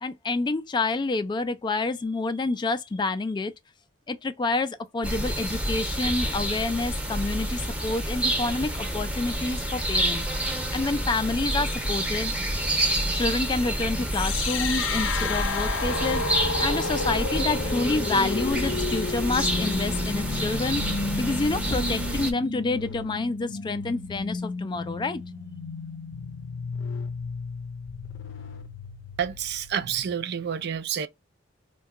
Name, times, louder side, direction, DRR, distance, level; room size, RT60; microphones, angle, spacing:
voice 1, 0.0-3.5 4.1-10.2 10.7-12.3 13.1-16.2 16.6-20.8 21.1-25.2, left 3 dB, 25° left, 0.3 m, -28 dB
sound 1, 5.0-22.3, right 1 dB, 5° right, 0.6 m, -28 dB
sound 2, 14.1-30.1, left 4 dB, 80° left, 0.5 m, -32 dB
voice 2, 29.2-31.1, right 8 dB, 60° right, 0.4 m, -29 dB
2.8 x 2.2 x 3.5 m
head